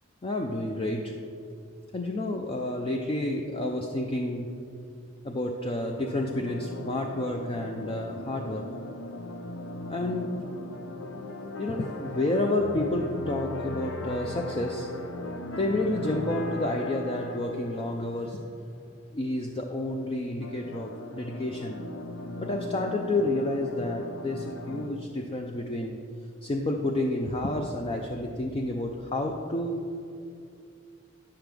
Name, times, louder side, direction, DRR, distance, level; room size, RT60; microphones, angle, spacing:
voice 1, 0.2-1.1 1.9-4.5 5.2-8.7 9.9-10.4 11.6-14.9 15.6-18.4 19.1-21.8 22.4-26.0 26.4-29.9, left 1 dB, 30° left, 2 dB, 0.5 m, -30 dB
sound 1, 5.9-18.5 20.4-24.9, left 2 dB, 90° left, 0.7 m, -38 dB
9.8 x 7.7 x 3.5 m, 2.4 s
head